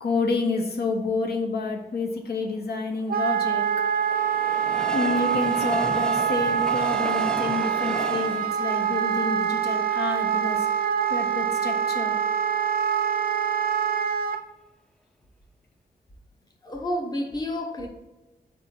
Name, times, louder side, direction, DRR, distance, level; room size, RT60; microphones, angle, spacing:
voice 1, 0.0-3.7 4.9-10.7 11.1-12.2, left 3 dB, 70° left, 3 dB, 0.8 m, -29 dB
Train, 3.0-10.3 10.8-10.9 11.1-11.2, equal, 5° left, 0.4 m, -36 dB
Wind instrument woodwind instrument, 3.1-14.4, right 8 dB, 65° right, 0.5 m, -25 dB
voice 2, 16.6-17.9, left 1 dB, 25° left, 1 dB, 0.9 m, -30 dB
4.7 x 3.8 x 5.6 m, 1.0 s
wide cardioid pair, 145°, 17 cm